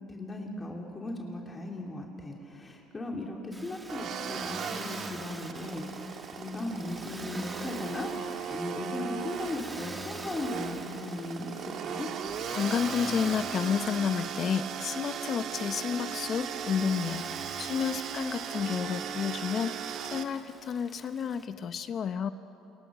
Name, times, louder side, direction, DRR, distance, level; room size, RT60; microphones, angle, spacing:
voice 1, 0.1-5.8 6.3-12.1, left 2 dB, 20° left, 0 dB, 2.8 m, -37 dB
Motor vehicle (road), 3.5-21.5, right 2 dB, 15° right, 1.5 m, -46 dB
sound 1, 3.9-20.2, right 7 dB, 55° right, 1.5 m, -37 dB
voice 2, 12.5-17.3 17.6-22.3, left 7 dB, 45° left, 11 dB, 0.8 m, -31 dB
27.5 x 22.0 x 6.2 m, 3.0 s
supercardioid pair, 100°, 0 cm